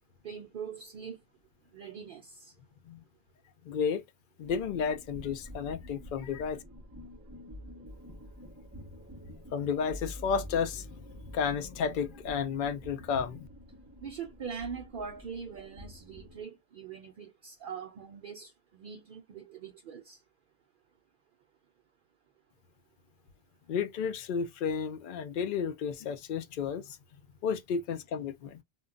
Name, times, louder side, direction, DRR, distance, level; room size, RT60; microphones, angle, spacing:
voice 1, 0.2-1.2 1.7-2.5 14.0-20.2, right 6 dB, 60° right, 0.7 m, -42 dB
voice 2, 3.6-4.0 4.4-6.6 9.5-10.9 11.3-13.5 23.7-27.0 27.4-28.6, left 6 dB, 60° left, 0.6 m, -32 dB
sound 1, 4.4-16.4, left 1 dB, 20° right, 0.5 m, -48 dB
2.2 x 2.1 x 3.6 m
omnidirectional pair, 1.1 m